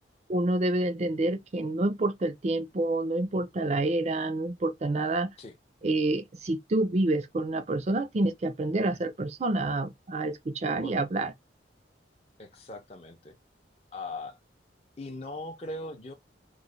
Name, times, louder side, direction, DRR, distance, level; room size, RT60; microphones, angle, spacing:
voice 1, 0.3-5.3 5.8-11.3, right 2 dB, 40° right, 0.4 m, -28 dB
voice 2, 12.4-13.4 13.9-14.4 15.0-16.1, left 2 dB, 35° left, 0.6 m, -40 dB
3.1 x 2.1 x 3.7 m
head